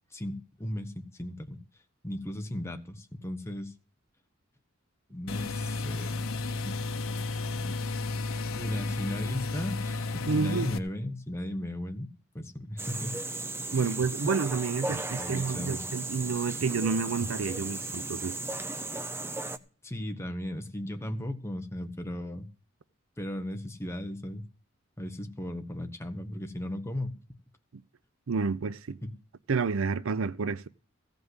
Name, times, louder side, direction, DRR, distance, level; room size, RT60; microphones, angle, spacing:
voice 1, 0.1-1.6 2.0-3.7 5.1-6.2 6.6-6.7 7.6-7.7 8.5-12.1 12.3-13.3 13.7-13.9 15.2-15.8 19.8-22.5 23.2-24.4 25.0-27.2 29.0-29.1, left 1 dB, 15° left, 1.1 m, -36 dB
sound 1, 5.3-10.8, left 3 dB, 80° left, 0.9 m, -33 dB
voice 2, 10.3-10.7 13.7-18.4 27.7-27.8 28.3-29.0 29.5-30.7, right 5 dB, 75° right, 0.5 m, -29 dB
sound 2, 12.8-19.6, right 2 dB, 10° right, 0.6 m, -36 dB
16.0 x 5.3 x 8.0 m
head